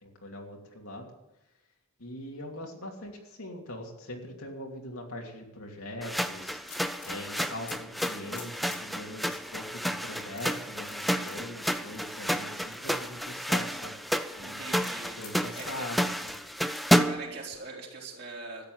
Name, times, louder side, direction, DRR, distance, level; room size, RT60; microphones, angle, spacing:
voice 1, 0.0-1.1 2.0-6.6 7.0-13.9 14.4-14.6 15.2-16.3, left 1 dB, 70° left, 0 dB, 2.9 m, -42 dB
sound 1, 6.0-17.4, equal, ahead, 0.4 m, -30 dB
sound 2, 6.2-8.8 9.3-9.4 10.2-11.4 11.9-12.2 12.7-13.4 14.7-15.6 16.2-16.4 16.7-16.9, left 7 dB, 90° left, 4.4 m, -47 dB
voice 2, 14.4-15.9 17.0-18.6, right 3 dB, 45° right, -3 dB, 3.8 m, -42 dB
13.5 x 9.5 x 8.0 m, 0.98 s
head